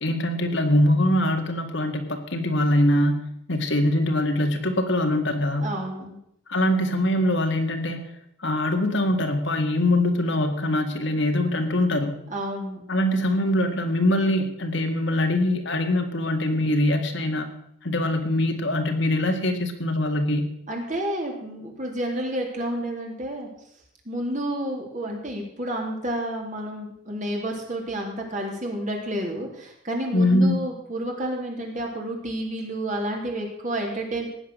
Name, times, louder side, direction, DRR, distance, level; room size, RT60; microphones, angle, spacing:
voice 1, 0.0-5.7 6.5-8.1 8.4-12.1 12.9-17.5 17.8-20.5 30.1-30.6, left 1 dB, 55° left, 4 dB, 1.9 m, -23 dB
voice 2, 5.6-6.2 12.3-12.9 20.7-23.5 24.0-34.3, right 1 dB, 35° right, 1 dB, 3.4 m, -30 dB
16.5 x 10.0 x 6.6 m, 0.72 s
head